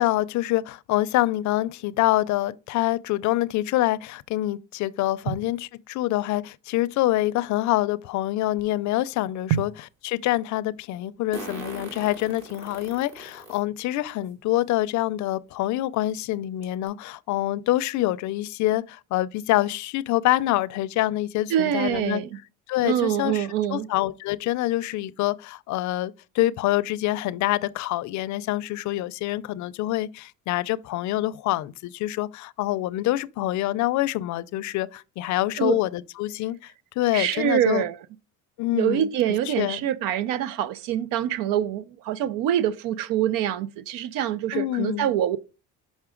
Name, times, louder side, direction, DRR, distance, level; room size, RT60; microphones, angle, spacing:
voice 1, 0.0-9.7 10.0-22.2 22.7-37.8 38.6-39.1 39.5-39.8 44.5-45.1, left 16 dB, 60° left, 0.5 m, -26 dB
Fart, 8.6-8.7 11.3-13.6 14.3-14.4 15.6-15.7 16.1-16.2 16.6-16.9, right 2 dB, 50° right, 2.6 m, -39 dB
voice 2, 21.5-22.4 22.8-23.9 35.6-35.8 37.1-38.0 38.7-45.5, right 11 dB, 85° right, 0.6 m, -25 dB
5.9 x 5.3 x 3.7 m
cardioid pair, 125°, 33 cm